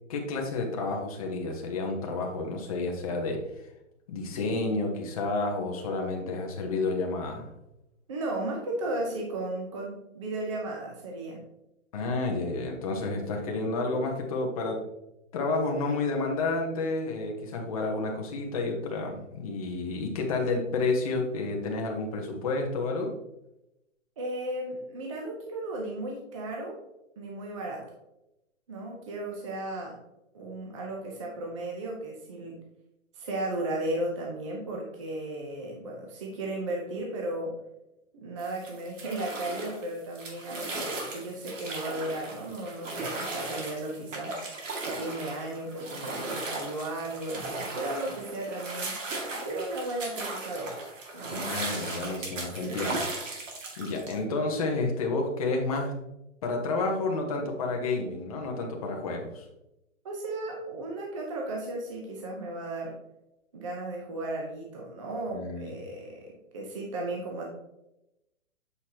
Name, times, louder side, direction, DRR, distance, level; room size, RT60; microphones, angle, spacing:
voice 1, 0.1-3.4 4.1-7.5 11.9-14.8 15.3-23.1 51.3-53.4 53.8-55.9 56.4-59.4 65.3-65.7, left 3 dB, 30° left, 1 dB, 1.0 m, -30 dB
voice 2, 8.1-11.4 24.2-26.8 27.2-27.9 28.7-30.0 30.3-32.6 33.1-37.5 38.1-44.4 44.8-49.0 49.4-50.8 51.1-51.6 52.5-52.8 60.0-62.9 63.5-67.4, right 2 dB, 25° right, -1 dB, 0.7 m, -35 dB
sound 1, 38.4-54.2, right 2 dB, 75° right, 2.2 m, -37 dB
8.2 x 4.7 x 2.9 m, 0.89 s
hypercardioid pair, 165°, 39 cm